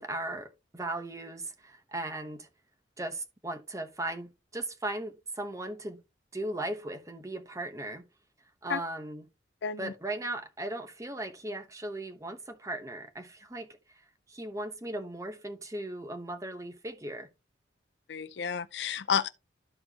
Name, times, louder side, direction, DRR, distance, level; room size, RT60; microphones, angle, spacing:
voice 1, 0.0-2.5 3.0-6.0 6.3-8.1 8.6-9.3 9.8-13.7 14.3-17.3, right 1 dB, 15° right, 1.0 m, -37 dB
voice 2, 9.6-9.9 18.1-19.3, left 7 dB, 65° left, 0.5 m, -31 dB
13.0 x 4.4 x 2.9 m
head